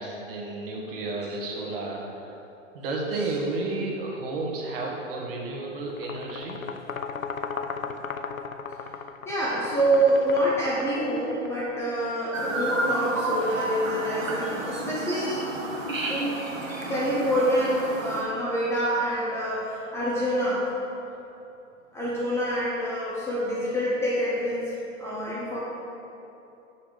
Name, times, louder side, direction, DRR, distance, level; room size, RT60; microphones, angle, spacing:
voice 1, 0.0-2.3 2.7-6.6, right 2 dB, 45° right, -1 dB, 1.4 m, -32 dB
sound 1, 5.9-11.6, left 5 dB, 90° left, 0.5 m, -36 dB
voice 2, 9.3-15.5 16.1-16.4 16.9-20.6 21.9-24.6 25.0-25.6, right 1 dB, 5° left, -7 dB, 0.6 m, -26 dB
Chirp tweet, 12.3-18.2, right 2 dB, 75° right, 1.4 m, -31 dB
6.3 x 5.7 x 5.1 m, 2.9 s
figure-of-eight pair, 110°, 39 cm